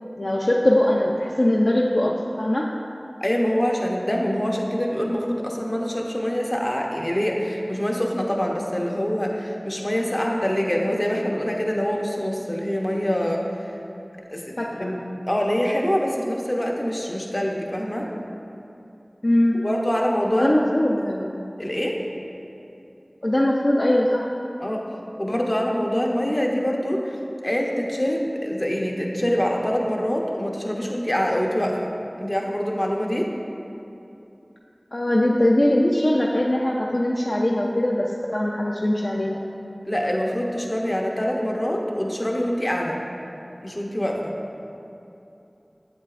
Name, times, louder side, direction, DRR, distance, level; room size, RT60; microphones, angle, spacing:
voice 1, 0.2-2.8 14.6-14.9 19.2-19.7 20.3-21.0 23.2-24.3 34.9-39.5, left 1 dB, 60° left, -2 dB, 0.4 m, -21 dB
voice 2, 3.2-13.8 14.3-15.0 15.2-18.1 19.6-21.3 21.6-22.0 24.6-24.8 25.2-27.2 27.4-31.9 32.2-33.3 39.8-43.0 43.6-44.4, equal, 35° left, -1 dB, 0.8 m, -25 dB
7.9 x 7.7 x 2.4 m, 2.8 s
wide cardioid pair, 45°, 0 cm